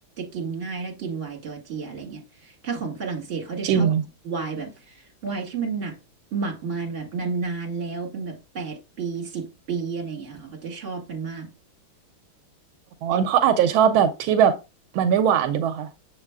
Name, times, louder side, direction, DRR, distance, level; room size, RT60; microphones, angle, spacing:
voice 1, 0.2-3.9 4.2-5.9 6.3-11.5 13.1-13.3, right 5 dB, 35° right, 2.0 m, -31 dB
voice 2, 3.6-4.0 13.0-14.5 14.9-15.9, right 8 dB, 80° right, 1.3 m, -20 dB
7.2 x 6.1 x 2.2 m
omnidirectional pair, 2.2 m